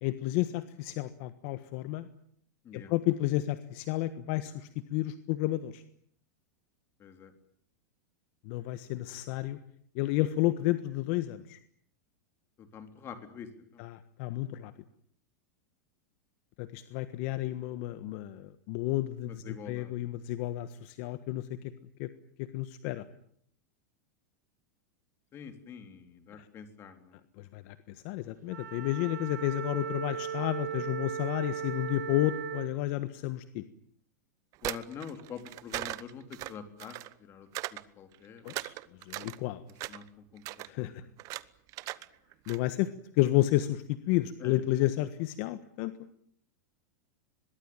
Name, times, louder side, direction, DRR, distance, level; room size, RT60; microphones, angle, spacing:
voice 1, 0.0-2.1 2.7-5.8 8.4-9.6 9.9-11.6 13.8-14.7 16.6-21.4 22.0-22.1 22.4-23.0 27.4-33.6 38.4-38.7 39.1-39.6 40.7-41.0 42.5-42.9 43.1-45.9, left 16 dB, 50° left, 12 dB, 1.4 m, -31 dB
voice 2, 7.0-7.3 12.6-13.8 19.3-20.1 25.3-27.2 34.6-38.5 39.9-41.1 44.4-44.6, left 7 dB, 25° left, 7 dB, 3.8 m, -46 dB
Wind instrument woodwind instrument, 28.5-32.8, right 9 dB, 85° right, 2.9 m, -37 dB
sound 1, 34.5-37.1 37.5-37.8 38.1-39.4 39.7-40.1 40.4-40.7 41.2-41.4 41.7-42.1 42.3-42.6, right 18 dB, 40° right, 1.1 m, -38 dB
25.0 x 22.0 x 9.1 m, 0.65 s
supercardioid pair, 145°, 9 cm